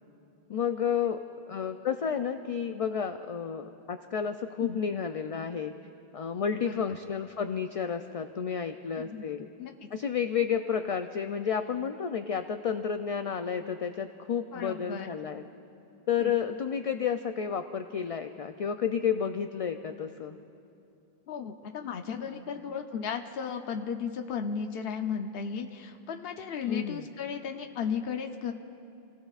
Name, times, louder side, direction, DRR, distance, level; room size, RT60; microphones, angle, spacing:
voice 1, 0.5-1.2 1.5-5.7 6.1-9.5 9.9-15.4 16.1-20.4 26.7-27.1, left 7 dB, 55° left, 8 dB, 0.4 m, -31 dB
voice 2, 6.6-7.0 8.9-9.3 9.6-9.7 14.5-15.1 16.2-16.4 21.3-28.5, left 6 dB, 70° left, 5 dB, 0.9 m, -35 dB
29.5 x 17.0 x 2.4 m, 2.7 s
omnidirectional pair, 1.0 m